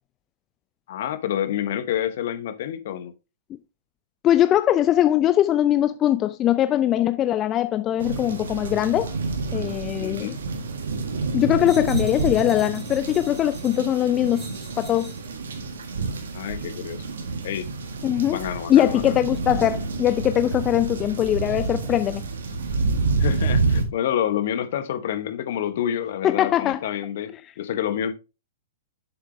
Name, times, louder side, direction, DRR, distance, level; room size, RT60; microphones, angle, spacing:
voice 1, 0.9-3.1 10.0-10.4 16.3-17.0 17.4-17.7 18.3-19.1 23.2-28.1, left 10 dB, 60° left, 0.9 m, -28 dB
voice 2, 4.2-9.1 9.5-10.3 11.3-14.4 14.8-15.1 18.0-18.4 18.7-22.2 26.2-26.8, left 12 dB, 30° left, 0.4 m, -21 dB
sound 1, 8.0-23.8, right 4 dB, 75° right, 1.7 m, -28 dB
sound 2, 11.6-15.3 16.0-16.2, right 2 dB, 10° right, 3.8 m, -45 dB
7.3 x 7.1 x 3.1 m
hypercardioid pair, 115°, 0 cm